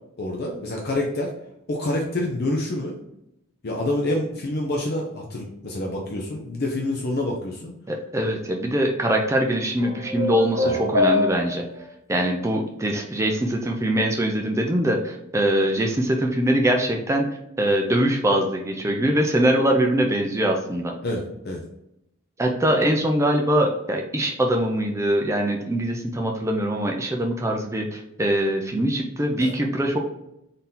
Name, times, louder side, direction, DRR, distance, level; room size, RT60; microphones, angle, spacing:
voice 1, 0.2-1.3 1.7-3.0 3.6-7.7 10.6-10.7 21.0-21.6 29.4-29.5, left 1 dB, 45° left, 0 dB, 0.5 m, -27 dB
voice 2, 7.9-11.6 12.1-17.2 17.6-20.9 22.4-30.0, right 1 dB, 15° right, 2 dB, 0.4 m, -22 dB
sound 1, 9.8-11.8, left 3 dB, 55° right, 1.1 m, -24 dB
4.0 x 2.7 x 3.6 m, 0.84 s
head